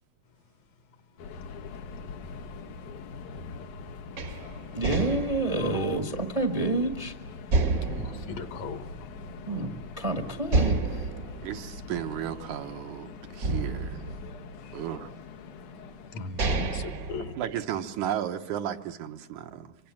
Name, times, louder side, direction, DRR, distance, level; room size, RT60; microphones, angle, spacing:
Subway metro underground, 1.2-16.5, left 5 dB, 85° left, 2.8 m, -43 dB
sound 1, 4.2-7.0 7.5-9.4 9.8-9.9 10.5-12.9 13.4-15.0 15.7-15.8 16.2-18.0, right 3 dB, 45° right, 1.1 m, -30 dB
voice 1, 4.7-7.1 9.5-9.7 10.0-11.1, right 2 dB, 25° right, 0.8 m, -28 dB
voice 2, 5.6-6.0 7.9-9.1 14.6-14.8 16.1-17.3, left 5 dB, 65° left, 2.5 m, -38 dB
voice 3, 11.4-14.0 14.7-15.1 17.4-19.8, right 10 dB, 85° right, 2.6 m, -34 dB
26.0 x 25.0 x 7.6 m
omnidirectional pair, 3.4 m